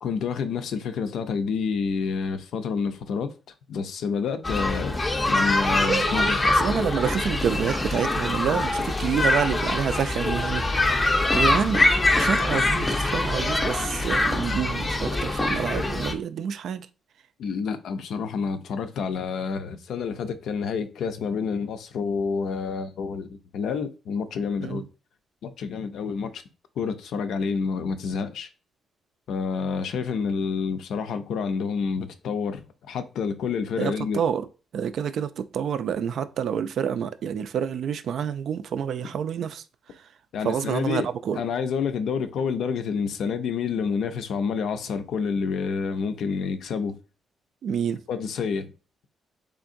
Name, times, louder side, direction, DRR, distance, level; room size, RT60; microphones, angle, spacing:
voice 1, 0.0-3.3 3.7-5.0 5.3-6.5 17.4-24.8 25.4-26.4 26.8-28.5 29.3-34.2 40.3-41.1 41.3-47.0 48.1-48.7, left 5 dB, 70° left, 0.5 m, -28 dB
sound 1, 4.4-16.1, left 2 dB, 20° left, 0.5 m, -24 dB
voice 2, 5.8-11.9 12.2-16.9 24.6-24.8 33.8-34.5 34.7-39.6 40.4-41.4 47.6-48.0, right 8 dB, 60° right, 0.3 m, -28 dB
3.8 x 3.4 x 2.5 m
cardioid pair, 155°, 0 cm